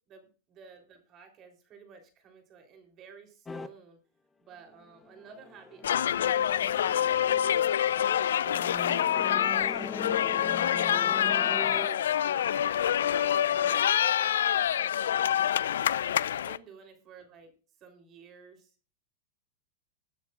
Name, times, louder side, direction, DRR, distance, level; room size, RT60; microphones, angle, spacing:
voice 1, 0.1-4.0 4.4-7.7 8.0-9.8 10.1-14.7 16.3-17.5 17.8-18.7, right 5 dB, 35° right, 5 dB, 3.5 m, -53 dB
sound 1, 3.5-3.7 4.8-11.9, left 4 dB, 15° left, 0.9 m, -41 dB
sound 2, 5.8-16.6, left 10 dB, 90° left, 0.4 m, -26 dB
20.5 x 9.4 x 2.4 m, 0.38 s
supercardioid pair, 140°, 0 cm